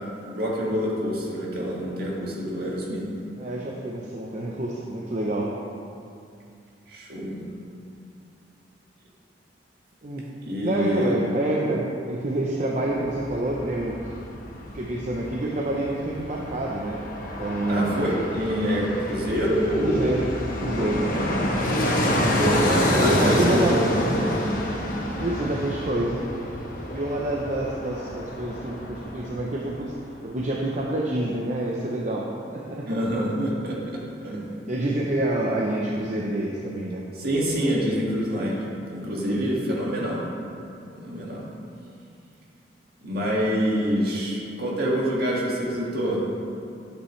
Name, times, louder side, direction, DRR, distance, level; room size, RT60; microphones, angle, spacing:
voice 1, 0.3-3.0 6.9-7.4 10.4-11.2 17.7-20.1 20.9-21.4 21.7-22.1 22.7-24.4 32.9-34.4 37.2-40.2 40.9-41.4 43.0-46.2, equal, 60° right, -4 dB, 2.0 m, -26 dB
voice 2, 3.4-5.6 10.0-10.3 10.6-14.0 14.7-18.2 19.8-21.2 22.0-23.9 25.2-26.3 26.9-29.9 30.2-32.9 34.3-37.1 39.3-39.6, right 1 dB, 40° right, -2 dB, 0.7 m, -27 dB
Fixed-wing aircraft airplane, 12.9-29.9 30.2-30.3, left 1 dB, 50° left, 1.1 m, -28 dB
11.5 x 8.3 x 3.2 m, 2.5 s
head